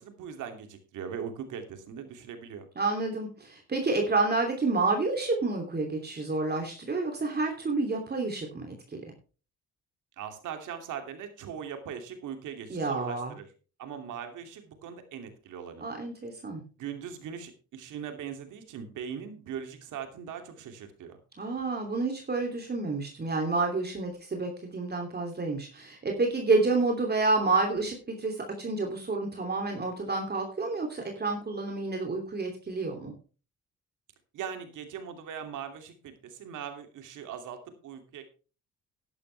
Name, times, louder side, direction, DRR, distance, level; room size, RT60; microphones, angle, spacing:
voice 1, 0.0-2.7 10.2-13.5 13.8-15.9 16.8-21.2 34.3-38.2, right 8 dB, 80° right, 6 dB, 2.7 m, -40 dB
voice 2, 2.8-9.0 12.7-13.3 15.8-16.6 21.4-33.1, right 3 dB, 35° right, 2 dB, 2.9 m, -29 dB
12.0 x 11.0 x 3.4 m, 0.35 s
cardioid pair, 90°, 30 cm